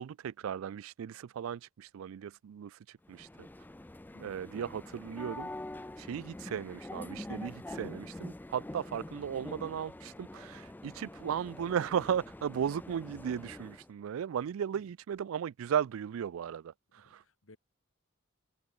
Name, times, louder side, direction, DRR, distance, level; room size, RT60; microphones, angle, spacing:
voice 1, 0.0-3.5 4.2-5.5 6.0-17.2, right 8 dB, 90° right, 0.3 m, -36 dB
sound 1, 3.1-13.9, left 1 dB, 10° left, 0.4 m, -45 dB
voice 2, 4.1-4.4 14.7-14.8 16.9-17.6, left 2 dB, 80° left, 2.2 m, -59 dB
head